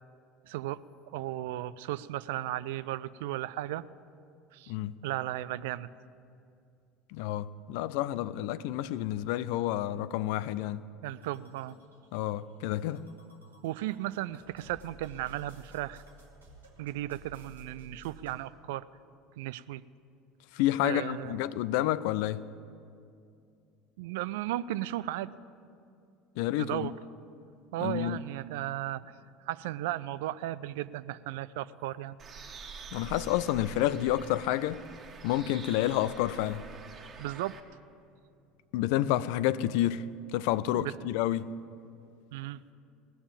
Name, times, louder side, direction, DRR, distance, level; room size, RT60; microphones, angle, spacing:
voice 1, 0.4-0.8 1.1-3.8 4.5-4.7 5.0-5.9 11.0-11.8 13.6-16.0 16.8-18.8 19.4-19.8 20.8-21.4 24.0-25.3 26.6-26.9 27.7-29.1 29.4-32.2 37.2-37.6 40.7-40.9 42.3-42.6, right 15 dB, 65° right, 0.4 m, -35 dB
voice 2, 7.1-10.8 12.1-13.0 20.5-22.4 26.4-26.9 27.8-28.2 32.9-34.8 35.2-36.6 38.7-40.0 40.3-41.5, left 13 dB, 60° left, 0.4 m, -29 dB
sound 1, 11.2-18.4, right 1 dB, 85° right, 2.1 m, -56 dB
Bird, 32.2-37.6, right 5 dB, 35° right, 1.5 m, -46 dB
18.5 x 7.0 x 8.8 m
figure-of-eight pair, 70°, 0 cm